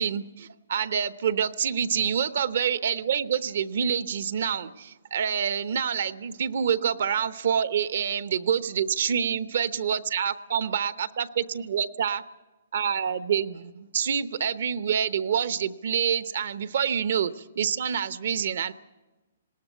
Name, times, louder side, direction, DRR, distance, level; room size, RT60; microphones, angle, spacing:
voice 1, 0.0-12.2 12.7-18.7, right 8 dB, 60° right, 13 dB, 0.8 m, -27 dB
20.0 x 17.5 x 8.1 m, 1.1 s
hypercardioid pair, 165°, 0 cm